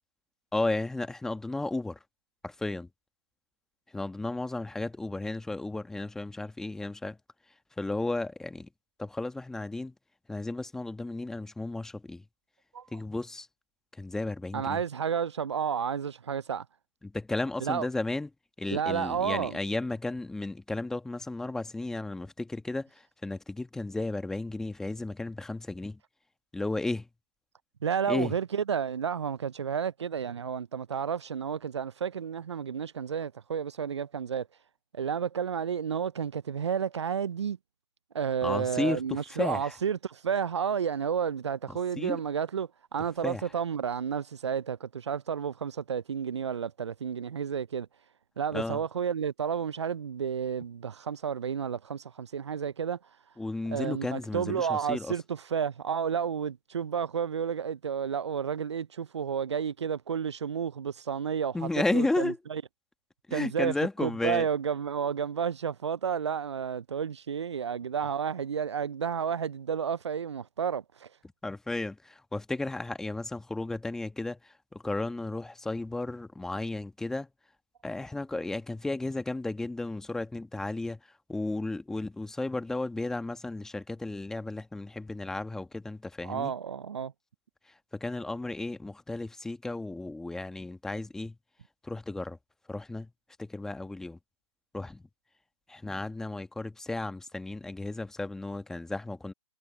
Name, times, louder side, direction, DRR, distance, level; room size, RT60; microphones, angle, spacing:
voice 1, 0.5-2.0 2.4-2.9 3.9-7.2 7.8-8.7 9.0-9.9 10.3-12.2 12.9-13.5 14.0-14.8 17.0-18.3 18.6-26.0 26.5-27.1 28.1-28.3 38.4-39.8 42.0-42.2 43.2-43.4 48.5-48.8 53.4-55.1 61.5-62.4 63.3-64.5 71.4-77.3 77.8-81.0 81.3-86.5 87.9-91.4 91.8-92.4 92.7-93.1 93.4-94.2 94.7-95.0 95.7-99.3, left 2 dB, 5° left, 1.3 m, -33 dB
voice 2, 14.5-16.6 17.6-17.9 18.7-19.6 27.8-34.5 34.9-37.6 38.1-47.9 48.4-53.0 53.7-62.6 63.3-71.1 86.2-87.1, right 7 dB, 75° right, 0.5 m, -31 dB
hypercardioid pair, 140°, 15 cm